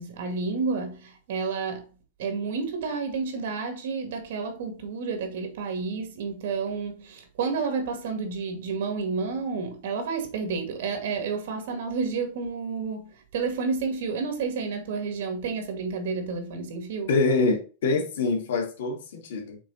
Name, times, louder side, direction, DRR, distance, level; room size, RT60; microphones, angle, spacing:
voice 1, 0.0-1.8 2.2-17.1, right 4 dB, 60° right, 2.1 m, -30 dB
voice 2, 17.1-19.6, left 3 dB, 80° left, 2.3 m, -25 dB
6.1 x 4.3 x 4.2 m
supercardioid pair, 175°, 0 cm